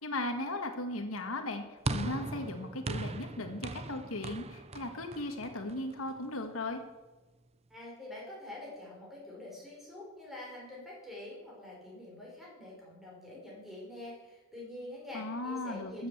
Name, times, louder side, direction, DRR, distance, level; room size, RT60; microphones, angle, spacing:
voice 1, 0.0-6.8 15.1-16.1, left 2 dB, 75° left, 6 dB, 1.5 m, -37 dB
sound 1, 1.9-6.3, right 3 dB, 30° right, 0.6 m, -39 dB
voice 2, 7.7-16.1, left 1 dB, ahead, -4 dB, 5.3 m, -46 dB
13.5 x 7.9 x 7.8 m, 1.2 s
head